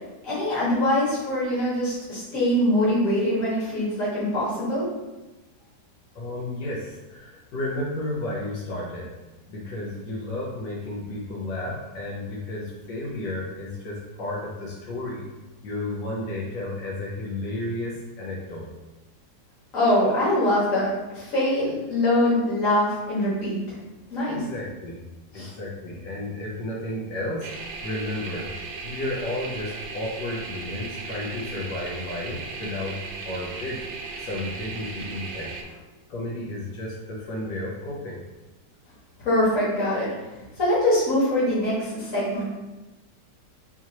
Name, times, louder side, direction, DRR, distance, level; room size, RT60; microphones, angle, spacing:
voice 1, 0.2-4.9 19.7-23.6 24.1-24.4 25.3-25.5 39.2-42.4, left 1 dB, 50° left, -8 dB, 1.9 m, -23 dB
voice 2, 6.1-9.1 9.5-15.3 15.6-18.7 24.3-25.0 25.3-27.5 27.8-28.5 28.8-33.8 34.2-35.5 36.1-38.2, left 1 dB, 90° left, -4 dB, 1.4 m, -32 dB
sound 1, 27.4-35.6, right 4 dB, 75° right, 1.1 m, -36 dB
4.7 x 2.8 x 2.9 m, 1.1 s
omnidirectional pair, 1.8 m